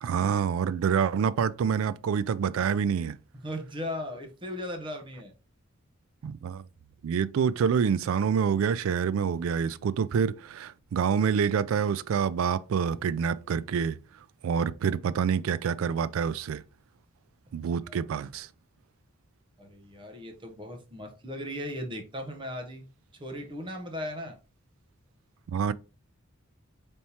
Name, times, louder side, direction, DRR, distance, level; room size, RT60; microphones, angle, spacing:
voice 1, 0.0-3.2 6.2-6.6 7.0-14.0 14.4-16.6 17.5-18.5 25.5-25.7, right 7 dB, 75° right, 0.3 m, -27 dB
voice 2, 3.4-5.3 17.9-18.0 19.6-22.8 23.2-24.4, left 1 dB, 25° right, 0.9 m, -37 dB
4.1 x 3.5 x 2.9 m
head